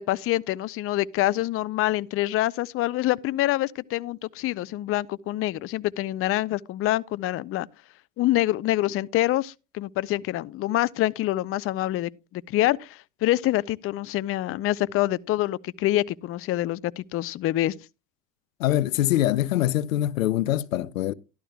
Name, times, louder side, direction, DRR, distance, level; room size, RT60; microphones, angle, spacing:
voice 1, 0.0-7.7 8.2-17.7, left 15 dB, 35° left, 0.5 m, -26 dB
voice 2, 18.6-21.1, left 13 dB, 90° left, 0.5 m, -24 dB
14.0 x 12.0 x 2.3 m
hypercardioid pair, 75°, 39 cm